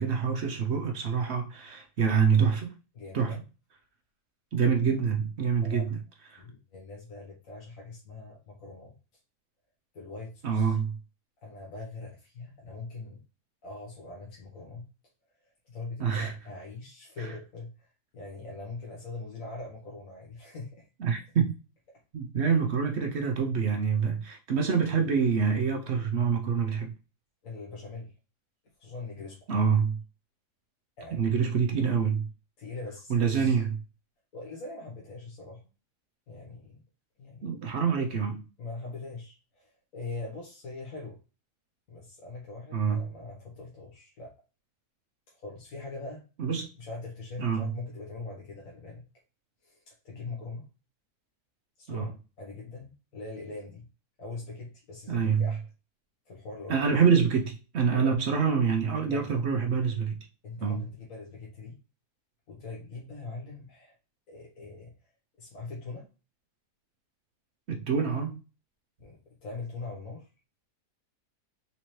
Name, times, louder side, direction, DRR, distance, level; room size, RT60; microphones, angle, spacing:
voice 1, 0.0-2.7 3.1-3.4 4.5-6.0 6.3-6.4 10.4-11.0 16.0-16.4 17.2-17.3 21.0-21.5 22.1-26.9 29.5-30.0 31.2-32.3 33.1-33.8 37.4-38.4 42.7-43.1 46.4-46.7 47.4-47.7 51.9-52.1 55.1-55.5 56.7-60.2 60.6-60.8 67.7-68.4, right 6 dB, 60° right, 0.7 m, -26 dB
voice 2, 2.9-3.4 5.6-5.8 6.4-8.9 9.9-10.8 11.4-13.2 13.6-14.8 15.6-20.9 27.4-28.1 28.8-29.5 31.0-31.3 32.6-33.6 34.3-35.6 36.3-36.8 37.2-37.5 37.9-38.1 38.6-41.2 41.9-44.3 45.3-46.2 46.7-49.0 49.6-50.7 51.8-53.8 54.2-55.6 56.3-57.0 57.9-58.1 59.1-59.4 60.4-61.7 62.5-63.9 64.3-64.9 65.4-66.1 69.0-70.3, left 3 dB, 60° left, 1.3 m, -42 dB
4.2 x 2.8 x 3.0 m
omnidirectional pair, 1.7 m